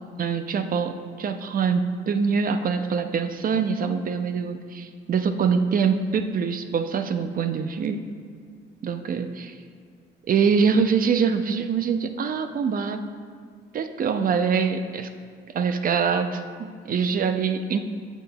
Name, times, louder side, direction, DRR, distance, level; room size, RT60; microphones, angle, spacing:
voice 1, 0.2-8.0 8.8-9.5 10.3-13.0 13.7-15.1 15.5-17.8, right 6 dB, 45° right, 9 dB, 0.5 m, -24 dB
8.4 x 7.1 x 2.3 m, 2.2 s
cardioid pair, 90°, 20 cm